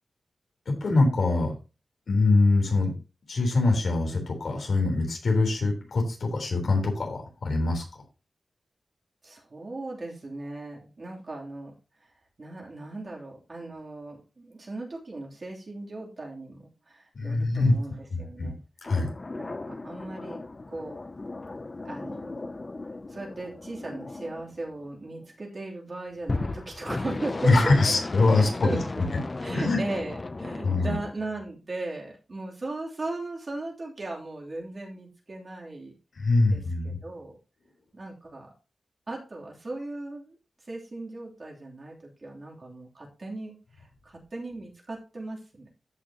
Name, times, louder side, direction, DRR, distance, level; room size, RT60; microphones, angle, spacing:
voice 1, 0.7-1.5 2.1-2.9 3.3-7.8 17.1-17.7 18.1-18.5 18.8-19.1 27.4-29.0 29.5-29.8 30.6-30.9 36.1-37.0, left 3 dB, 65° left, 2 dB, 3.7 m, -23 dB
voice 2, 9.2-11.7 12.4-18.6 19.4-20.4 20.7-20.9 21.8-22.6 23.1-27.8 28.4-29.0 29.4-35.9 36.5-37.4 37.9-38.5 39.1-40.4 40.7-45.7, right 2 dB, 35° right, -2 dB, 3.1 m, -37 dB
sound 1, 18.8-25.2 26.2-31.1, left 2 dB, 25° left, 0.5 m, -36 dB
14.0 x 6.2 x 2.9 m, 0.31 s
wide cardioid pair, 175°, 0 cm